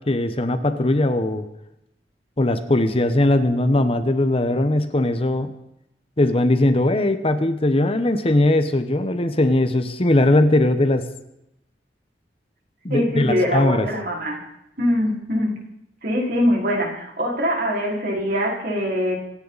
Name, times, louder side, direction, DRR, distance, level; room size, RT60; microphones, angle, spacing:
voice 1, 0.1-1.5 2.4-5.5 6.2-11.1 12.8-13.9, left 1 dB, 35° left, 9 dB, 1.0 m, -19 dB
voice 2, 12.9-14.4 14.8-15.5 16.0-19.1, equal, 60° right, -2 dB, 5.0 m, -23 dB
25.5 x 10.0 x 4.1 m, 0.83 s
head